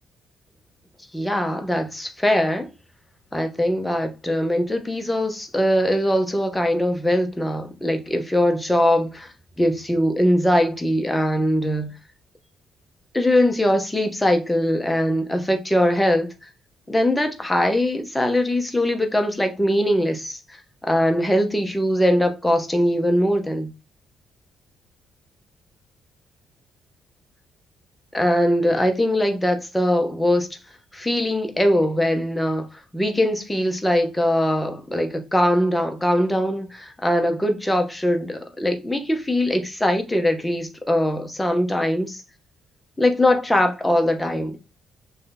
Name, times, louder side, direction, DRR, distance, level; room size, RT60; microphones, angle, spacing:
voice 1, 1.1-2.7 3.3-9.3 9.6-11.9 13.1-16.3 16.9-23.7 28.1-30.5 30.9-32.7 32.9-42.2 43.0-44.7, left 1 dB, 10° left, 0.8 m, -21 dB
3.2 x 2.8 x 3.9 m
cardioid pair, 90°, 0 cm